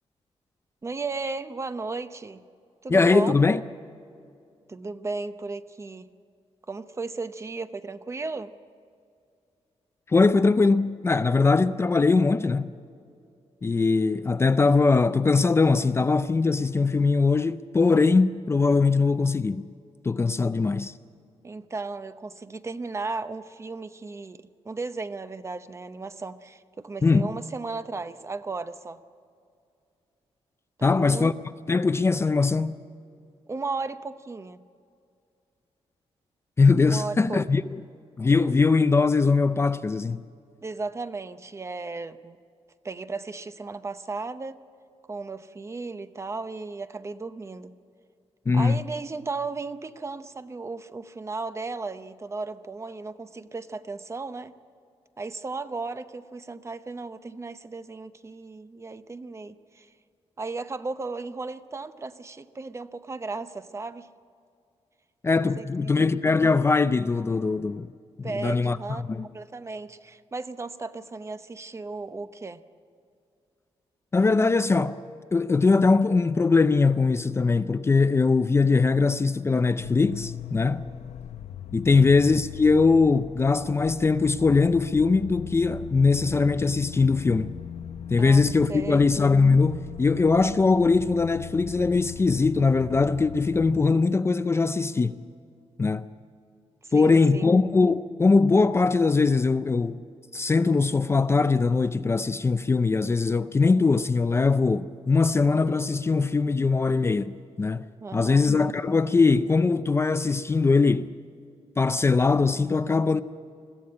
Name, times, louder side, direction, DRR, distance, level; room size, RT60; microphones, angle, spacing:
voice 1, 0.8-2.4 2.8-3.3 4.7-6.1 6.7-8.5 20.4-20.5 21.4-29.0 30.8-31.3 33.5-34.6 36.8-37.4 40.6-42.4 42.8-44.6 45.1-47.7 48.5-54.5 55.2-59.9 60.4-64.1 65.4-65.9 68.2-69.0 69.3-72.6 81.9-82.1 88.2-89.1 96.8-97.5 108.0-108.5, right 3 dB, 25° right, 0.7 m, -35 dB
voice 2, 2.9-3.6 10.1-12.7 13.6-19.7 20.0-20.9 27.0-27.3 30.8-31.3 31.7-32.7 36.6-37.6 38.2-40.2 48.5-48.8 65.2-67.9 68.2-69.3 74.1-75.0 75.3-80.8 81.7-87.5 88.1-95.2 95.8-96.1 96.9-100.0 100.3-107.9 108.1-111.1 111.8-113.2, left 4 dB, 25° left, 0.4 m, -21 dB
sound 1, 79.8-93.9, left 9 dB, 80° left, 0.7 m, -39 dB
22.0 x 15.0 x 8.5 m
wide cardioid pair, 135°, 11 cm